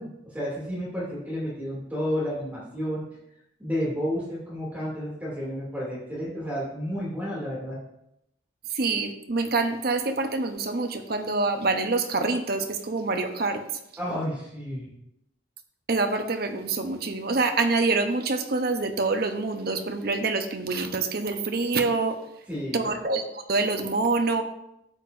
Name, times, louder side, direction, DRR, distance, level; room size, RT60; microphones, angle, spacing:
voice 1, 0.0-3.0 3.6-7.8 14.0-14.9 22.5-22.9, equal, 10° right, -7 dB, 2.6 m, -31 dB
voice 2, 8.7-13.6 15.9-22.2 22.7-24.4, right 3 dB, 55° right, 6 dB, 0.8 m, -26 dB
12.0 x 8.3 x 2.6 m, 0.83 s
head